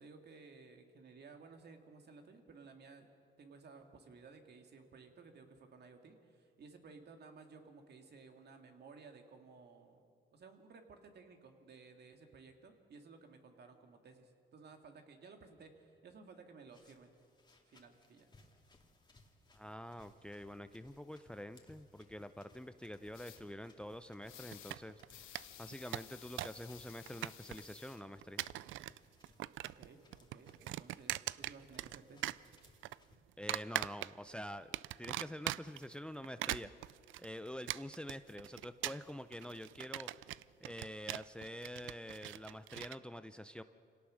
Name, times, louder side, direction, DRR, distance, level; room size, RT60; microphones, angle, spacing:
voice 1, 0.0-3.1 3.4-10.0 10.3-17.1 17.7-18.3 22.5-22.6 29.6-32.4, right 4 dB, 55° right, 5 dB, 2.3 m, -57 dB
sound 1, 16.7-33.2, left 2 dB, 20° left, 2.4 m, -67 dB
voice 2, 19.5-28.4 33.4-34.7 35.0-36.7 37.2-43.6, equal, 5° left, 12 dB, 0.6 m, -47 dB
sound 2, 23.1-23.4 24.2-24.8 25.1-28.0, left 11 dB, 90° left, 1.4 m, -55 dB
sound 3, 24.5-25.1 25.4-25.5 25.7-26.6 26.9-27.7 28.2-29.0 29.2-29.9 30.1-32.0 32.2-33.0 33.5-34.3 34.7-35.8 36.2-43.0, right 15 dB, 80° right, 0.4 m, -41 dB
26.0 x 17.5 x 6.4 m, 2.4 s
cardioid pair, 90°, 20 cm